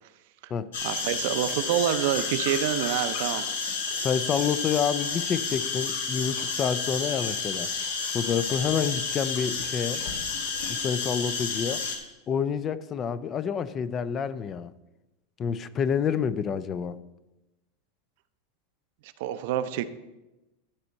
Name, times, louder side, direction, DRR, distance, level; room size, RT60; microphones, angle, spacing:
sound 1, 0.7-12.0, left 4 dB, 85° left, 1.9 m, -31 dB
voice 1, 0.8-3.5 19.2-19.8, right 11 dB, 60° right, 0.6 m, -27 dB
voice 2, 4.0-7.8 8.1-10.0 10.7-11.8 12.3-14.7 15.4-17.0, left 7 dB, 25° left, 0.4 m, -28 dB
12.0 x 4.3 x 6.5 m
supercardioid pair, 155°, 0 cm